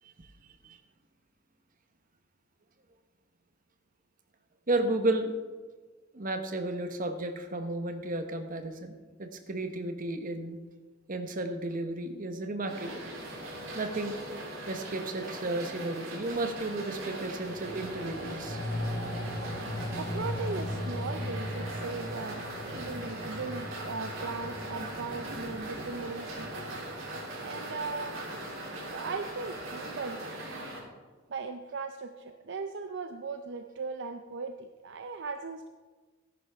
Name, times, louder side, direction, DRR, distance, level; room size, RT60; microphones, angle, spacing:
voice 1, 4.7-5.3 6.1-8.9 9.2-10.6 11.1-13.0 13.7-14.4 14.7-18.6 19.4-19.5, right 2 dB, 45° right, 6 dB, 1.1 m, -33 dB
sound 1, 12.7-30.8, right 1 dB, 80° right, 3.3 m, -40 dB
sound 2, 17.4-28.0 28.3-28.4, left 1 dB, 45° left, 2.7 m, -38 dB
voice 2, 20.0-26.5 27.4-28.1 28.9-30.2 31.3-35.7, right 4 dB, 60° right, 6 dB, 0.6 m, -38 dB
14.0 x 10.5 x 3.5 m, 1.4 s
head